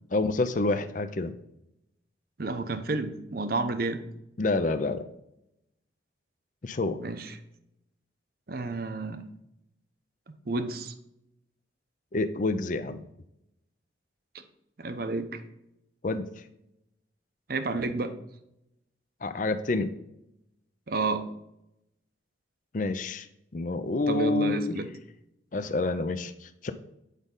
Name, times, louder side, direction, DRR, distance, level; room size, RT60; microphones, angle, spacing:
voice 1, 0.1-1.4 4.4-5.0 6.6-7.0 12.1-13.0 16.0-16.3 19.2-19.9 22.7-23.3 23.5-24.8 25.5-26.7, left 3 dB, 45° left, 10 dB, 0.5 m, -28 dB
voice 2, 2.4-4.0 7.0-7.4 8.5-9.2 10.5-10.9 14.8-15.4 17.5-18.1 20.9-21.2 24.1-24.9, right 3 dB, 50° right, 9 dB, 0.7 m, -30 dB
8.2 x 5.2 x 3.8 m, 0.84 s
head